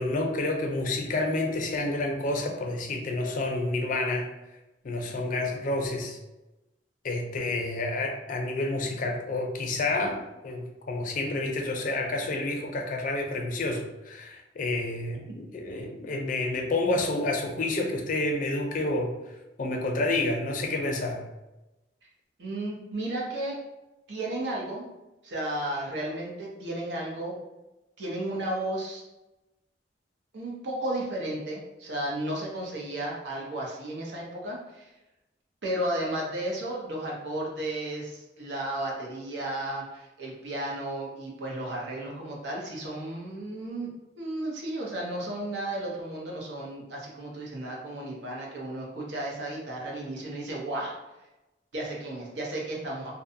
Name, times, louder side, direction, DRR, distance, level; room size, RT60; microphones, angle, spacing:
voice 1, 0.0-4.3 4.8-6.2 7.0-19.1 19.6-21.2, left 2 dB, 45° left, 2 dB, 0.4 m, -29 dB
voice 2, 22.4-23.6 24.1-24.9 25.2-27.4 28.0-29.0 30.3-34.9 35.6-50.9 51.7-53.1, right 1 dB, 85° right, -2 dB, 0.7 m, -33 dB
2.6 x 2.2 x 2.6 m, 0.99 s
head